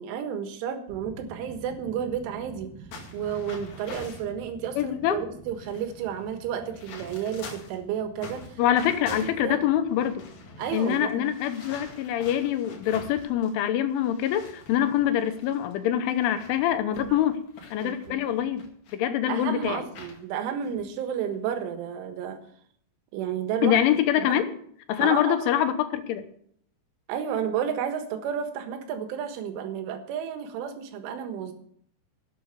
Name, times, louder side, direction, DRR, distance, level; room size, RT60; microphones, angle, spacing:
voice 1, 0.0-2.7 3.1-8.6 9.1-9.7 10.6-11.3 17.1-17.2 17.8-18.2 19.3-22.4 23.1-23.8 24.2-24.4 25.0-25.5 27.1-31.5, right 8 dB, 90° right, 7 dB, 3.9 m, -32 dB
sound 1, 0.9-10.9, right 5 dB, 60° right, 1.9 m, -48 dB
sound 2, 2.9-4.3 5.0-5.1 5.4-7.8 8.2-13.6 13.9-18.9 19.3-20.2 20.6-20.8 21.3-21.6, left 3 dB, 50° left, 2.9 m, -46 dB
voice 2, 4.8-5.2 8.6-10.2 10.7-17.4 17.7-18.6 18.9-19.9 23.6-24.5 24.9-26.2, left 11 dB, 85° left, 9 dB, 3.5 m, -25 dB
12.0 x 8.5 x 6.9 m, 0.64 s
omnidirectional pair, 5.4 m